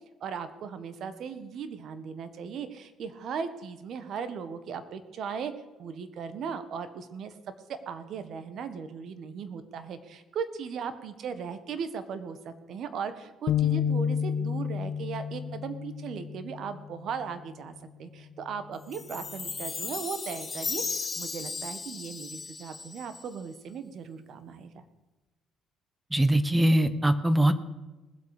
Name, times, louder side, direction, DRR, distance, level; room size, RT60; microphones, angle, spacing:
voice 1, 0.2-5.5 5.8-7.3 7.7-24.8, right 6 dB, 60° right, 11 dB, 1.5 m, -37 dB
sound 1, 13.5-17.0, left 8 dB, 70° left, 0.6 m, -30 dB
Chime, 18.9-23.4, left 4 dB, 30° left, 0.7 m, -36 dB
voice 2, 26.1-27.5, right 1 dB, 10° right, 12 dB, 1.1 m, -22 dB
20.0 x 8.1 x 5.0 m, 1.1 s
supercardioid pair, 85°, 0 cm